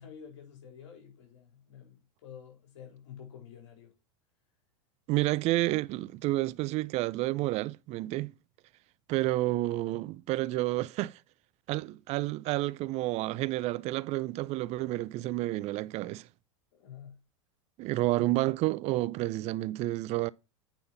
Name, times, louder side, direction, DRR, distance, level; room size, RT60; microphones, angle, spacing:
voice 1, 0.0-3.9 16.7-17.2 18.3-18.4, left 8 dB, 70° left, 4.2 m, -49 dB
voice 2, 5.1-8.3 9.1-11.2 11.7-16.3 17.8-20.3, right 18 dB, 45° right, 0.4 m, -30 dB
8.9 x 5.5 x 4.1 m
hypercardioid pair, 95°, 16 cm